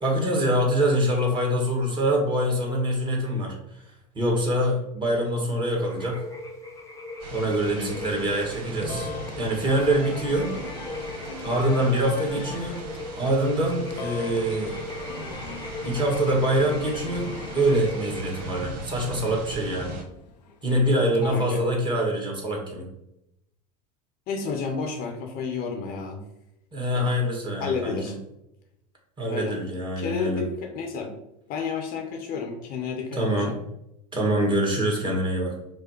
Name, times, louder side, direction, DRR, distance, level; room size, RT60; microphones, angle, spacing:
voice 1, 0.0-3.6 4.2-6.3 7.3-9.1 9.4-10.6 11.4-12.8 13.2-14.8 15.8-20.0 20.6-22.9 26.7-28.2 29.2-30.4 33.1-33.5 34.1-35.6, right 1 dB, 20° right, -1 dB, 1.7 m, -25 dB
sound 1, 5.9-18.6, left 2 dB, 15° left, 1.1 m, -39 dB
sound 2, 7.2-20.0, right 2 dB, 65° right, 1.3 m, -39 dB
sound 3, 8.0-21.3, left 5 dB, 85° left, 0.6 m, -41 dB
voice 2, 21.3-21.6 24.3-26.2 26.9-27.0 27.6-28.2 29.3-29.5 30.0-31.1 31.5-33.6, left 5 dB, 45° left, 3 dB, 0.8 m, -31 dB
5.1 x 2.1 x 4.4 m, 0.83 s
hypercardioid pair, 85°, 21 cm